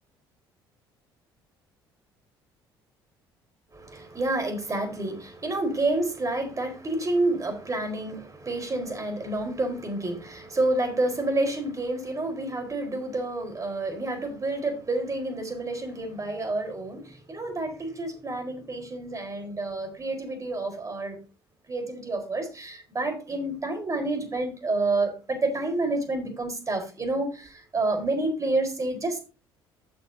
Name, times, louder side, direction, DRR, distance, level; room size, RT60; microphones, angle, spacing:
voice 1, 3.7-21.2 21.7-29.2, right 2 dB, 25° right, 4.5 m, -29 dB
15.0 x 6.7 x 2.8 m
figure-of-eight pair, 55°, 12 cm